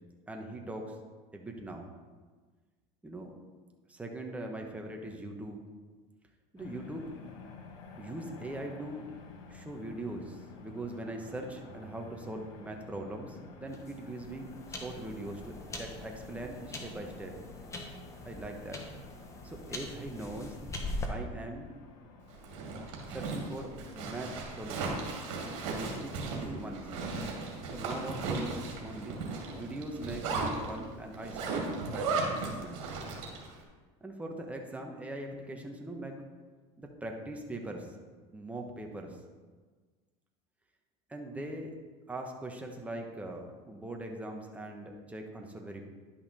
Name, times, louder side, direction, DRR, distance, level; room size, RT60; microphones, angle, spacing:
voice 1, 0.3-1.0 1.3-1.9 3.0-3.3 3.9-5.6 6.5-7.1 8.0-9.1 9.5-17.4 18.2-18.8 19.4-20.6 21.1-21.7 23.1-25.0 25.6-26.9 27.6-32.8 34.0-36.2 36.8-37.9 38.3-39.2 41.1-41.7 42.1-45.8, right 1 dB, 10° right, 2 dB, 1.2 m, -41 dB
sound 1, 6.6-24.6, left 4 dB, 80° left, 1.3 m, -51 dB
sound 2, 13.7-21.1, left 2 dB, 20° left, 1.3 m, -42 dB
Zipper (clothing), 22.3-33.5, right 3 dB, 75° right, 2.2 m, -36 dB
11.0 x 5.7 x 4.3 m, 1.4 s
supercardioid pair, 120°, 15 cm